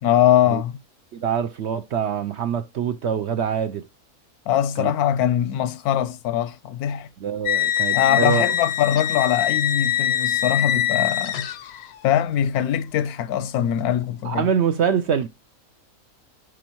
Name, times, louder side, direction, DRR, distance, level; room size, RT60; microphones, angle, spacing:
voice 1, 0.0-0.8 4.5-7.1 7.9-11.5 12.0-14.4, left 10 dB, 85° left, 1.1 m, -22 dB
voice 2, 1.1-3.8 4.8-4.9 7.2-8.4 14.2-15.3, right 7 dB, 65° right, 0.7 m, -24 dB
sound 1, 7.5-12.0, left 11 dB, 65° left, 0.6 m, -23 dB
11.0 x 5.0 x 2.9 m
omnidirectional pair, 1.6 m